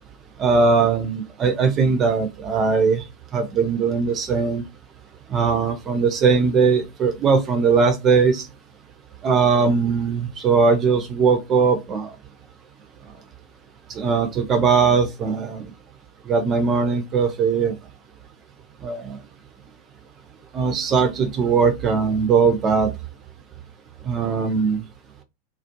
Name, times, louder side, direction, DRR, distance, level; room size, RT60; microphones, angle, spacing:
voice 1, 0.4-3.0 3.3-4.6 5.3-8.5 9.2-12.1 13.9-15.7 16.3-17.8 18.8-19.2 20.5-22.9 24.0-24.8, right 5 dB, 25° right, 0.5 m, -20 dB
2.4 x 2.1 x 2.7 m
figure-of-eight pair, 90°, 0 cm